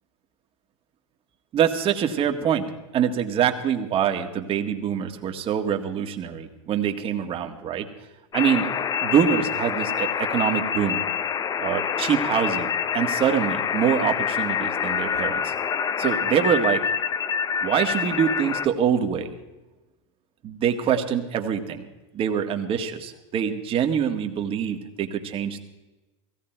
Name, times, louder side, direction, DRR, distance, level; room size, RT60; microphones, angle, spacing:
voice 1, 1.5-2.7 2.9-7.9 8.3-8.7 9.0-11.0 11.6-15.5 16.0-16.8 17.6-19.3 20.4-25.6, right 8 dB, 35° right, 5 dB, 1.9 m, -25 dB
sound 1, 8.3-18.7, left 7 dB, 25° left, 0.7 m, -26 dB
17.0 x 16.5 x 4.6 m, 1.1 s
hypercardioid pair, 105°, 16 cm